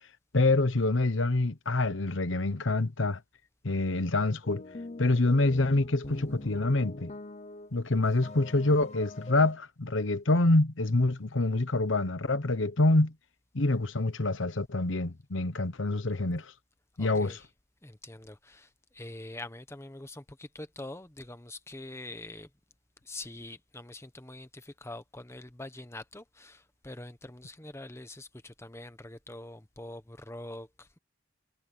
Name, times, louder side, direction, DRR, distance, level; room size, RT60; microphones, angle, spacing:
voice 1, 0.3-3.2 3.6-4.6 5.0-7.1 7.7-13.1 13.5-16.5 17.0-17.4, left 2 dB, 70° left, 1.1 m, -26 dB
sound 1, 4.4-9.5, left 2 dB, 35° left, 0.8 m, -43 dB
voice 2, 17.0-17.5 17.8-22.5 23.0-31.0, left 2 dB, 15° left, 1.2 m, -44 dB
head